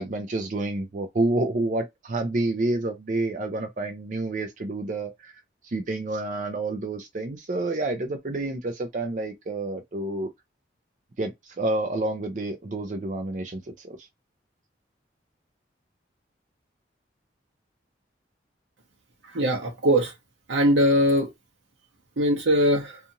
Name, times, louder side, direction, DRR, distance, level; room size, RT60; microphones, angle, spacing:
voice 1, 0.0-5.3 5.6-10.3 11.2-14.1, right 2 dB, 40° right, 0.4 m, -29 dB
voice 2, 19.3-20.1 20.5-21.3 22.2-23.0, equal, 85° right, 0.7 m, -21 dB
2.6 x 2.4 x 2.7 m
head